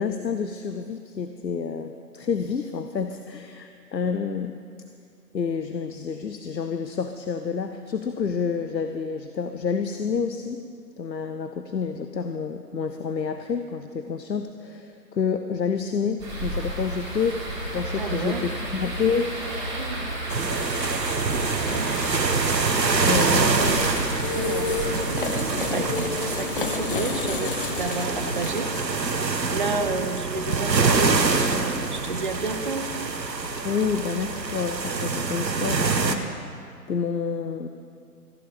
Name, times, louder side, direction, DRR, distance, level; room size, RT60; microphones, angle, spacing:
voice 1, 0.0-4.6 5.3-10.6 11.0-19.5 23.1-24.1 25.8-25.9 33.6-36.2 36.9-37.7, left 6 dB, 85° left, 8 dB, 0.8 m, -29 dB
sound 1, 16.2-25.0, right 1 dB, 5° right, 2.8 m, -32 dB
voice 2, 18.0-18.5 19.6-20.1 21.3-22.2 23.1-23.2 23.6-24.8 25.7-28.9 29.5-32.9, right 3 dB, 30° right, 6 dB, 0.6 m, -31 dB
sound 2, 20.3-36.1, right 4 dB, 85° right, 1.1 m, -26 dB
sound 3, 23.3-34.7, left 3 dB, 35° left, 0.7 m, -33 dB
14.0 x 11.0 x 5.0 m, 2.3 s
figure-of-eight pair, 145°, 49 cm